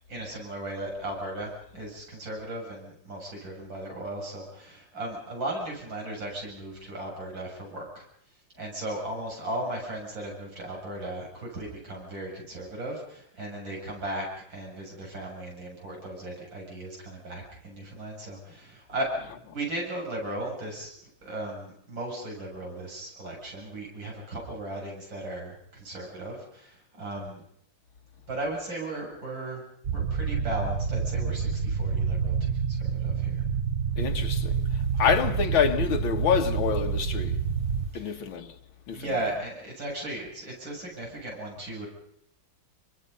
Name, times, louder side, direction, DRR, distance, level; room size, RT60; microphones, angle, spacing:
voice 1, 0.1-8.0 8.5-27.4 28.3-29.6 29.9-33.4 35.0-35.2 37.9-38.2 38.9-41.9, right 1 dB, 70° right, 8.3 m, -36 dB
sound 1, 29.8-37.9, right 6 dB, 50° right, 1.3 m, -28 dB
voice 2, 34.0-34.5 35.0-37.4 37.9-38.5 38.9-39.0, left 7 dB, 90° left, 2.3 m, -26 dB
27.5 x 24.5 x 5.5 m
omnidirectional pair, 2.1 m